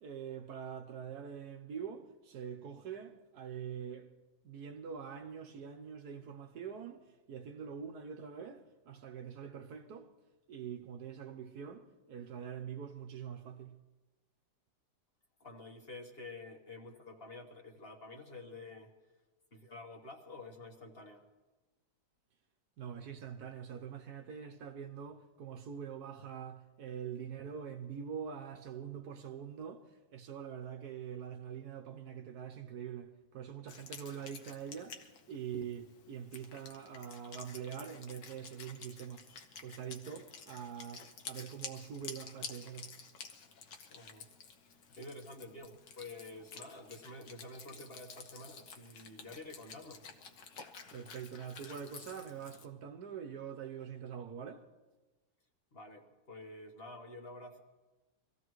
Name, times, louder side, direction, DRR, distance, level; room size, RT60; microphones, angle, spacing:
voice 1, 0.0-4.1 4.4-10.1 10.5-13.7 22.8-39.2 39.6-42.9 50.9-54.7, right 8 dB, 65° right, 1.3 m, -44 dB
voice 2, 15.4-18.9 19.5-21.3 43.9-44.3 44.7-50.1 55.7-57.6, left 2 dB, 35° left, 1.4 m, -49 dB
Wind instrument woodwind instrument, 33.7-52.7, left 5 dB, 80° left, 1.8 m, -51 dB
24.5 x 15.5 x 3.1 m
omnidirectional pair, 1.9 m